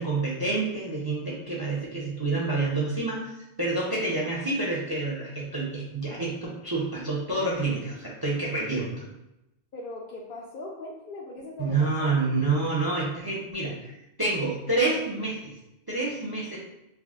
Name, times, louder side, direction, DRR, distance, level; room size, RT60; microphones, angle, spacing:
voice 1, 0.0-3.3 3.6-8.9 11.6-13.9 14.2-15.6 15.9-16.6, right 3 dB, 25° right, -5 dB, 0.6 m, -28 dB
voice 2, 9.7-12.2, left 2 dB, 60° left, -4 dB, 0.7 m, -40 dB
5.9 x 2.0 x 2.4 m, 0.88 s
omnidirectional pair, 1.2 m